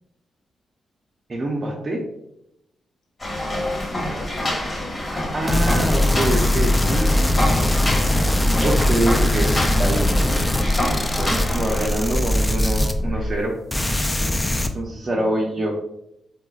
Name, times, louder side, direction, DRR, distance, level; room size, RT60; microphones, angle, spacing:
voice 1, 1.3-2.0 5.0-7.5 8.6-10.1 11.2-13.6 14.7-15.7, right 1 dB, 40° right, -3 dB, 0.5 m, -25 dB
voice 2, 3.2-5.1 6.1-6.4 7.8-8.2 15.0-15.5, left 1 dB, 75° left, 1 dB, 0.6 m, -39 dB
sound 1, 3.2-11.9, left 1 dB, 35° left, 1.0 m, -27 dB
sound 2, 5.5-13.4 13.7-14.7, left 1 dB, 20° left, 0.3 m, -21 dB
3.6 x 2.1 x 2.3 m, 0.81 s
supercardioid pair, 55°, 0 cm